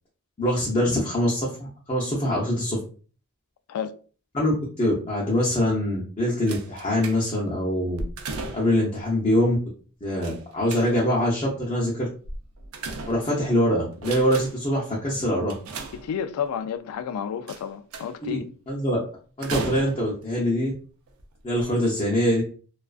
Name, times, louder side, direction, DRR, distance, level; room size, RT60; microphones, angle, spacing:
voice 1, 0.4-2.8 4.3-4.5 4.8-8.0 8.5-9.6 10.0-12.1 13.1-15.5 18.2-18.4 18.7-19.0 19.4-20.7 21.4-22.4, equal, 25° left, 0.6 m, -24 dB
sound 1, 6.5-7.5 7.9-8.9 10.2-11.2 12.2-13.5 13.9-14.7 15.5-16.5 17.5-18.3 19.4-20.3 21.1-21.2 21.5-21.6, right 3 dB, 80° right, 0.4 m, -36 dB
voice 2, 15.9-18.5, left 8 dB, 90° left, 0.3 m, -31 dB
2.3 x 2.3 x 2.3 m
head